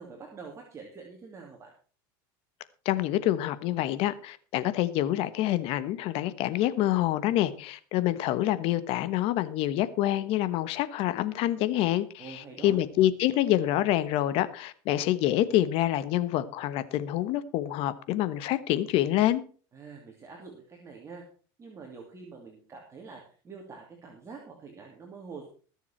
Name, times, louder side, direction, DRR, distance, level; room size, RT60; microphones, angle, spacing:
voice 1, 0.0-1.7 12.2-12.8 19.7-21.2 21.6-25.5, right 4 dB, 25° right, 2.9 m, -45 dB
voice 2, 2.8-19.4, left 13 dB, 60° left, 1.2 m, -27 dB
20.0 x 7.2 x 4.5 m
supercardioid pair, 125°, 11 cm